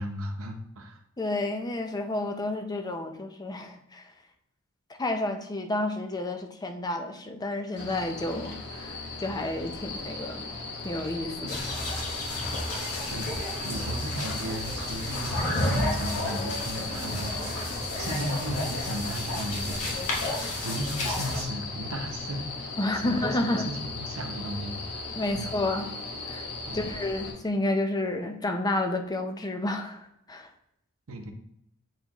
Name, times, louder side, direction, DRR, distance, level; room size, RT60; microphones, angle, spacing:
voice 1, 0.0-1.0 11.4-11.6 13.1-20.0 20.3-22.5 22.9-25.6 26.7-26.8 31.1-31.3, equal, 70° right, 5 dB, 0.8 m, -36 dB
voice 2, 1.2-4.1 5.0-10.6 10.8-11.6 22.8-23.7 25.1-25.9 26.3-26.5 26.7-30.5, left 2 dB, 20° left, 5 dB, 0.5 m, -30 dB
sound 1, 7.8-27.3, left 3 dB, 55° left, 1.3 m, -37 dB
sound 2, 11.5-21.4, left 1 dB, 85° left, 1.7 m, -32 dB
7.9 x 4.5 x 3.0 m, 0.77 s
head